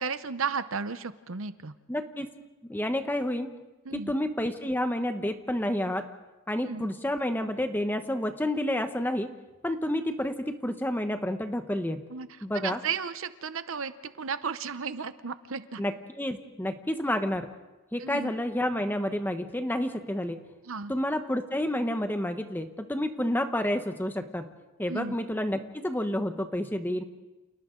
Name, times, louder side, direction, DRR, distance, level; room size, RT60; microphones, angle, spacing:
voice 1, 0.0-1.7 3.9-4.1 6.6-6.9 12.1-12.3 12.5-15.8 18.0-18.3 20.7-20.9 24.9-25.2, right 5 dB, 65° right, 12 dB, 0.8 m, -34 dB
voice 2, 1.9-2.3 2.6-3.5 3.9-6.0 6.5-9.3 9.6-12.0 12.4-12.8 15.8-17.5 17.9-20.4 20.9-24.5 24.8-27.0, left 1 dB, 10° left, 7 dB, 1.0 m, -29 dB
30.0 x 28.5 x 3.8 m, 1.1 s
head